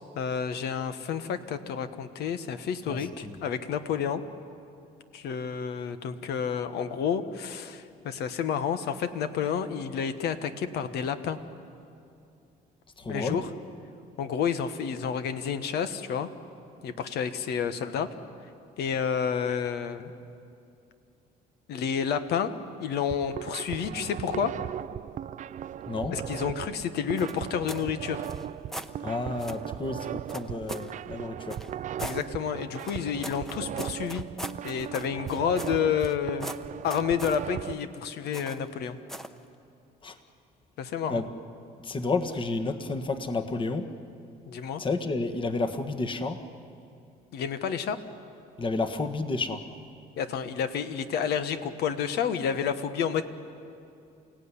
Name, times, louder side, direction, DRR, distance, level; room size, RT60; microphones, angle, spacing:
voice 1, 0.1-4.2 5.1-11.4 13.1-13.5 14.2-16.3 16.8-18.1 18.8-20.1 21.7-22.5 22.8-24.5 26.1-28.2 32.0-34.2 34.6-36.5 36.8-39.0 40.8-41.2 44.5-44.8 47.3-48.0 50.2-53.2, left 7 dB, 75° left, 10 dB, 1.5 m, -30 dB
voice 2, 2.9-3.4 13.0-13.4 25.9-26.2 29.0-31.6 40.0-40.2 41.1-41.3 41.8-43.9 44.8-46.4 48.6-49.6, left 3 dB, 30° left, 7 dB, 1.7 m, -31 dB
sound 1, 23.1-37.7, right 10 dB, 45° right, 0.5 m, -37 dB
sound 2, 27.2-27.9 28.2-28.9 29.4-29.6 30.3-30.9 31.5-32.2 32.8-36.1 36.4-37.4 38.3-38.7 39.1-39.4, equal, ahead, 1.0 m, -40 dB
29.0 x 16.5 x 9.9 m, 2.6 s
cardioid pair, 110°, 17 cm